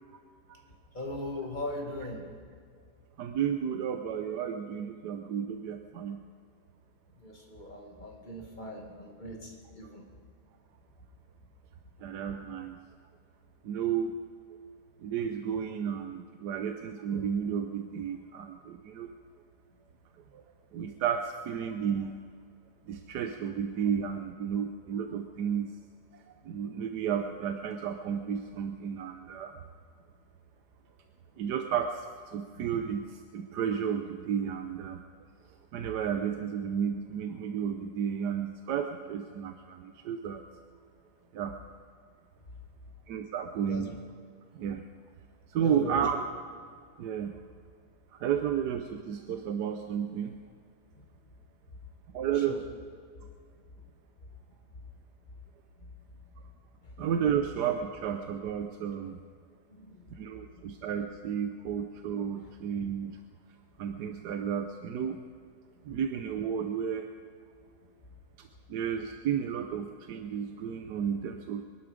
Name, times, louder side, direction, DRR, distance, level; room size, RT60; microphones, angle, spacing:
voice 1, 0.9-2.3 7.2-10.0 43.7-44.0 45.6-46.1 52.3-52.6 59.7-60.1, left 1 dB, 30° left, 0 dB, 2.2 m, -39 dB
voice 2, 3.2-6.2 12.0-12.8 13.6-14.1 15.0-19.1 20.3-20.4 20.7-22.2 22.9-25.8 26.4-29.5 31.4-35.0 35.7-40.4 41.3-41.6 43.1-44.0 44.6-44.8 45.5-46.2 47.0-47.4 48.1-50.3 52.1-52.6 57.0-59.2 60.2-63.2 63.8-65.2 65.9-67.1 68.4-71.6, right 8 dB, 90° right, 6 dB, 1.4 m, -32 dB
22.0 x 12.0 x 5.1 m, 2.1 s
omnidirectional pair, 1.7 m